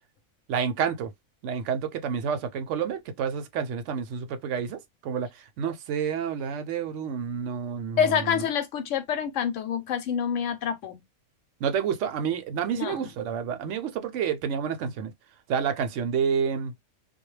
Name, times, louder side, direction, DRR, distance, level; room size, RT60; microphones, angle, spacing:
voice 1, 0.5-1.1 1.4-8.4 11.6-15.1 15.5-16.7, right 7 dB, 70° right, 0.8 m, -29 dB
voice 2, 8.0-11.0 12.8-13.1, left 8 dB, 70° left, 0.9 m, -27 dB
2.2 x 2.2 x 3.0 m
omnidirectional pair, 1.4 m